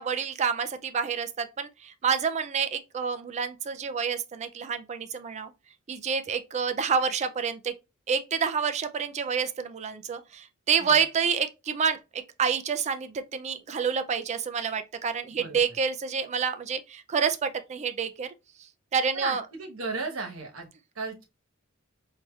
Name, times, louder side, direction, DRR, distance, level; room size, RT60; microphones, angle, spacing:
voice 1, 0.0-5.5 5.9-7.7 8.1-18.3 18.9-19.4, right 6 dB, 35° right, 0.3 m, -28 dB
voice 2, 15.4-15.8 19.1-20.7 20.9-21.3, right 3 dB, 80° right, 1.1 m, -35 dB
4.7 x 2.7 x 2.3 m
head